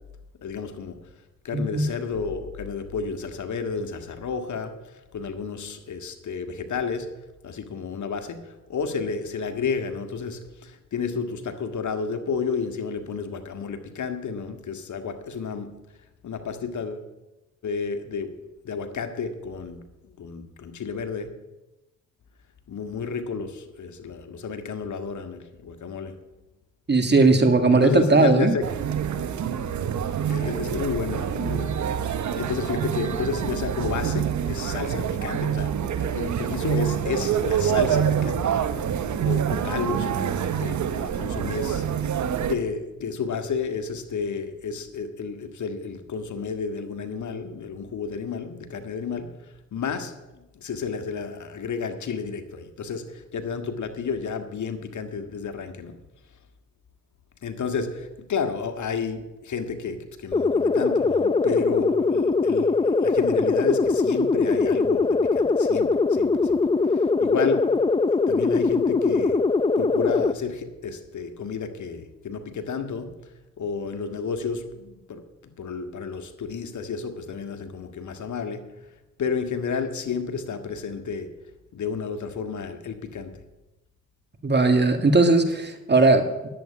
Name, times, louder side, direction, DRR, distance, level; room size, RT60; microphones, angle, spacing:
voice 1, 0.4-1.0 1.4-4.7 5.1-7.1 7.4-8.4 8.7-15.7 16.2-17.1 17.6-18.3 18.6-19.8 20.2-21.3 22.7-26.1 27.7-28.6 30.3-31.7 32.0-38.4 39.2-41.8 42.5-49.3 49.7-50.1 50.6-56.0 57.4-66.6 66.9-67.6 68.3-69.4 69.8-73.1 73.6-75.2 75.6-78.6 79.2-81.3 81.7-83.4, left 5 dB, 60° left, 7 dB, 1.7 m, -31 dB
voice 2, 1.5-1.9 26.9-28.5 84.4-86.5, right 3 dB, 30° right, 6 dB, 2.0 m, -18 dB
sound 1, 28.6-42.5, right 8 dB, 60° right, 1.1 m, -26 dB
sound 2, 60.3-70.3, left 4 dB, 15° left, 0.6 m, -22 dB
11.0 x 8.0 x 8.6 m, 1.0 s
supercardioid pair, 55°, 33 cm